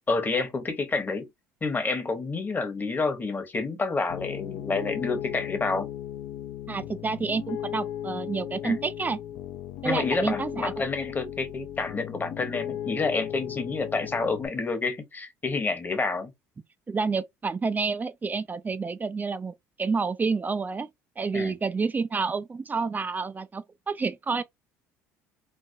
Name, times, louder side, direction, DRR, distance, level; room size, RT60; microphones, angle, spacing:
voice 1, 0.1-1.3 1.6-5.9 8.6-8.8 9.8-16.3 21.3-21.5, left 3 dB, 25° left, 1.0 m, -29 dB
Piano, 4.1-14.5, left 11 dB, 70° left, 0.5 m, -36 dB
voice 2, 6.7-9.2 9.8-10.7 16.9-20.9 21.2-24.4, right 4 dB, 25° right, 0.4 m, -29 dB
3.2 x 2.1 x 2.6 m
hypercardioid pair, 70°, 7 cm